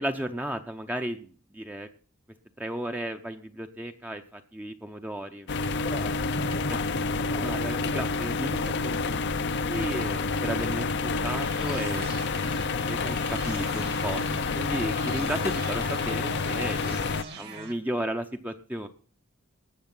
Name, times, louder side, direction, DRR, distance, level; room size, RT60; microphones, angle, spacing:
voice 1, 0.0-1.9 2.6-5.5 7.4-12.1 12.9-18.9, right 1 dB, 10° right, 6 dB, 0.7 m, -34 dB
sound 1, 5.5-17.2, left 4 dB, 55° left, 0.6 m, -28 dB
voice 2, 5.7-7.6 7.9-8.3, left 2 dB, 30° left, 13 dB, 0.9 m, -39 dB
sound 2, 10.9-17.7, right 4 dB, 50° right, 1.6 m, -43 dB
19.5 x 6.9 x 5.5 m, 0.40 s
head